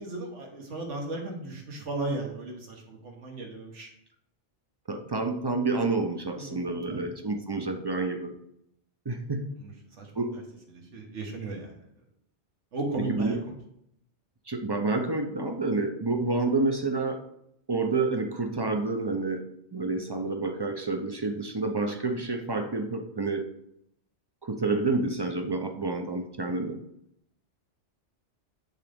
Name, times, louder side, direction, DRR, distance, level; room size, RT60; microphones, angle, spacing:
voice 1, 0.0-3.9 6.3-7.1 9.6-9.7 10.0-10.2 10.7-11.8 12.7-13.5, right 2 dB, 85° right, 2 dB, 1.7 m, -36 dB
voice 2, 4.9-8.3 9.1-9.5 10.2-10.4 13.0-13.4 14.5-17.2 17.7-19.4 19.7-23.5 24.4-26.8, right 3 dB, 35° right, 5 dB, 0.4 m, -29 dB
10.0 x 3.8 x 3.5 m, 0.77 s
omnidirectional pair, 1.2 m